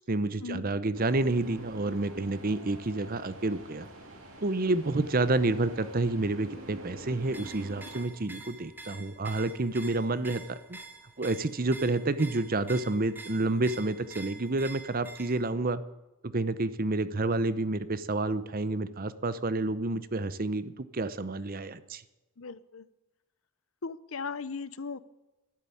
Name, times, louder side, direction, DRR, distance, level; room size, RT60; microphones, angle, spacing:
voice 1, 0.1-3.9 4.4-10.8 11.2-15.8 16.2-22.0, right 2 dB, 40° right, 15 dB, 0.7 m, -29 dB
sound 1, 0.9-8.0, right 1 dB, 60° right, 3.2 m, -47 dB
sound 2, 7.2-15.5, right 3 dB, 10° right, 1.4 m, -47 dB
voice 2, 22.4-22.9 23.8-25.0, left 4 dB, 65° left, 17 dB, 0.7 m, -37 dB
12.0 x 10.5 x 9.7 m, 1.0 s
head